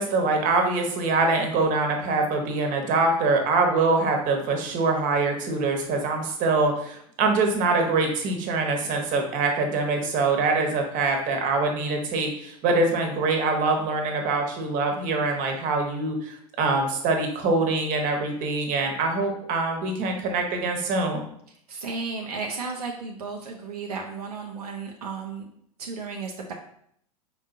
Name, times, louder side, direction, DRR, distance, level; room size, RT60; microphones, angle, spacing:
voice 1, 0.0-21.2, right 3 dB, 45° right, 3 dB, 1.1 m, -24 dB
voice 2, 21.7-25.5 25.8-26.5, right 4 dB, 85° right, 1 dB, 0.6 m, -34 dB
5.2 x 3.8 x 2.6 m, 0.68 s
hypercardioid pair, 90°, 19 cm